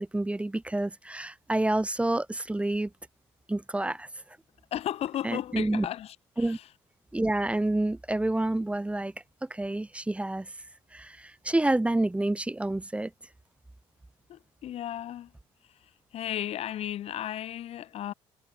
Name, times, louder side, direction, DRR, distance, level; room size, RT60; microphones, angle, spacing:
voice 1, 0.0-2.9 3.5-4.1 5.2-5.9 6.4-6.6 7.1-9.1 9.4-10.5 10.9-13.1, right 1 dB, 10° right, 1.0 m, -28 dB
voice 2, 4.7-6.7 14.3-15.3 15.7-18.1, left 11 dB, 60° left, 1.3 m, -35 dB
supercardioid pair, 70°, 12 cm